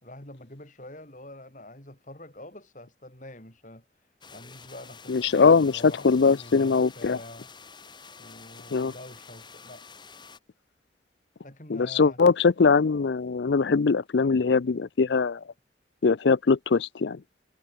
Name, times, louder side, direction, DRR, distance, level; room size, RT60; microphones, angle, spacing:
voice 1, 0.0-3.8 4.3-7.5 8.2-9.8 11.4-12.2, left 1 dB, 45° left, 4.5 m, -46 dB
sound 1, 4.2-10.4, left 5 dB, 25° left, 3.6 m, -48 dB
voice 2, 5.1-7.2 8.7-8.9 11.7-15.4 16.0-17.2, left 4 dB, 70° left, 0.5 m, -21 dB
head